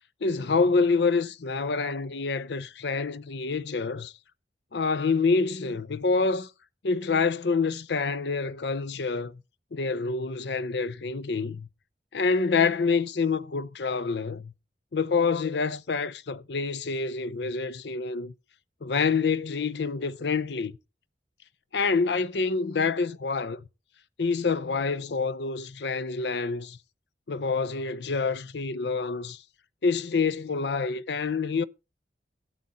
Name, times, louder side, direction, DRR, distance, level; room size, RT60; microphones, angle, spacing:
voice 1, 0.2-4.1 4.7-6.5 6.8-9.4 9.7-11.7 12.1-14.5 14.9-18.3 18.8-20.8 21.7-23.6 24.2-26.8 27.3-29.4 29.8-31.6, left 4 dB, 75° left, 0.6 m, -27 dB
13.5 x 7.8 x 4.2 m
head